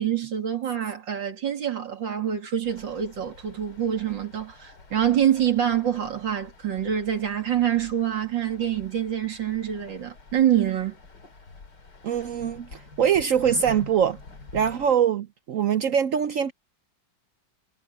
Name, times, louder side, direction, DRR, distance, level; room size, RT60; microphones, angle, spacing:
voice 1, 0.0-11.0, right 10 dB, 85° right, 3.3 m, -26 dB
sound 1, 2.6-15.0, left 3 dB, 70° left, 3.0 m, -47 dB
voice 2, 12.0-14.2 14.5-16.5, right 8 dB, 65° right, 0.8 m, -23 dB
omnidirectional pair, 2.0 m